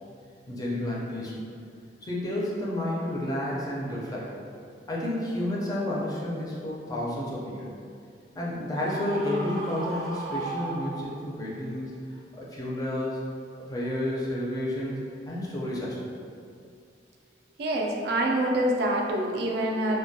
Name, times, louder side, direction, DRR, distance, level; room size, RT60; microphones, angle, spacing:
voice 1, 0.5-1.4 2.0-4.4 4.9-7.7 8.3-11.9 12.4-13.2 13.7-15.0 15.3-16.0, left 1 dB, 20° left, -6 dB, 0.4 m, -31 dB
Screaming, 8.7-11.4, right 3 dB, 25° right, 0.6 m, -36 dB
voice 2, 17.6-20.0, right 1 dB, 65° right, 1 dB, 0.3 m, -26 dB
2.2 x 2.1 x 2.7 m, 2.3 s
head